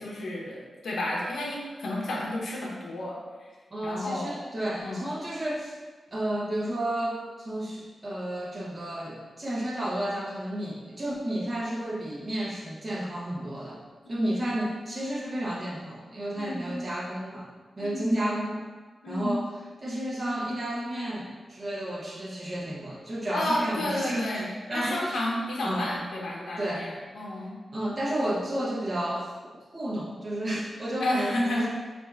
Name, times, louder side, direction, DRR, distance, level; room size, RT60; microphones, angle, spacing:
voice 1, 0.0-3.2 3.8-4.3 4.8-5.1 14.1-14.5 16.3-16.7 17.8-18.3 19.0-19.4 23.3-27.6 31.0-31.7, left 1 dB, 85° left, -3 dB, 0.6 m, -31 dB
voice 2, 3.7-5.8 6.1-13.8 14.1-17.5 17.8-18.6 19.1-19.5 19.8-24.4 24.7-25.2 25.6-25.9 26.6-26.9 27.7-29.3 29.7-31.7, right 1 dB, 35° right, -5 dB, 0.7 m, -32 dB
4.3 x 2.5 x 2.3 m, 1.4 s
wide cardioid pair, 120°, 0 cm